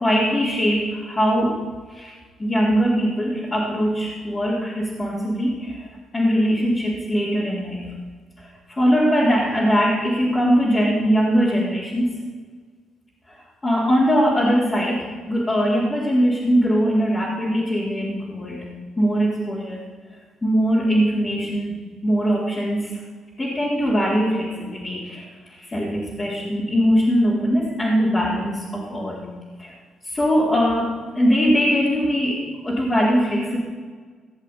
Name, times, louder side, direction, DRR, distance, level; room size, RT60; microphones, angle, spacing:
voice 1, 0.0-1.6 1.9-2.1 2.4-5.9 6.1-7.9 8.4-12.1 13.3-13.4 13.6-18.7 19.0-19.8 20.4-22.9 23.4-29.3 29.6-29.7 30.0-33.6, equal, 20° left, -7 dB, 4.2 m, -21 dB
17.0 x 7.3 x 9.8 m, 1.6 s
cardioid pair, 90°, 0 cm